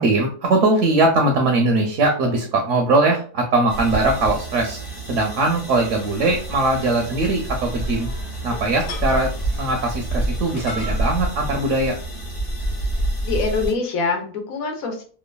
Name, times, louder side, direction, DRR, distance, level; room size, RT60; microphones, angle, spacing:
voice 1, 0.0-4.8 5.1-8.1 8.4-9.3 9.6-12.0, right 2 dB, 65° right, 3 dB, 0.8 m, -20 dB
sound 1, 3.7-13.7, right 1 dB, 30° left, 0.7 m, -28 dB
sound 2, 5.7-11.4, left 1 dB, 90° left, 1.3 m, -40 dB
voice 2, 13.2-15.0, left 4 dB, 70° left, 3 dB, 1.1 m, -24 dB
3.0 x 2.2 x 2.2 m, 0.41 s
omnidirectional pair, 1.6 m